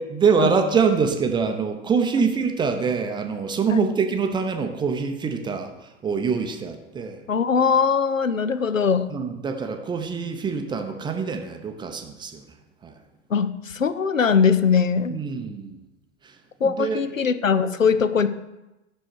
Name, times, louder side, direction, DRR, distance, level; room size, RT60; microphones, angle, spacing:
voice 1, 0.0-7.2 9.1-12.4 12.8-12.9 15.1-15.8 16.2-17.0, right 5 dB, 10° right, 6 dB, 0.5 m, -25 dB
voice 2, 7.3-9.1 13.3-15.2 16.6-18.3, left 6 dB, 90° left, 12 dB, 0.6 m, -21 dB
8.1 x 6.4 x 4.6 m, 1.0 s
figure-of-eight pair, 90°, 38 cm